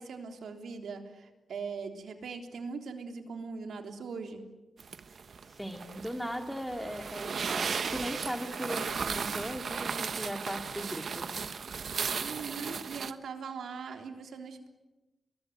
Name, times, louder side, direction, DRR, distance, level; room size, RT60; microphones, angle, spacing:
voice 1, 0.0-4.4 12.2-14.7, right 5 dB, 85° right, 5 dB, 3.5 m, -40 dB
sound 1, 4.8-13.1, right 5 dB, 65° right, 1.4 m, -35 dB
voice 2, 5.5-11.4, equal, ahead, 5 dB, 2.6 m, -38 dB
23.5 x 21.0 x 9.6 m, 1.1 s
cardioid pair, 70°, 0 cm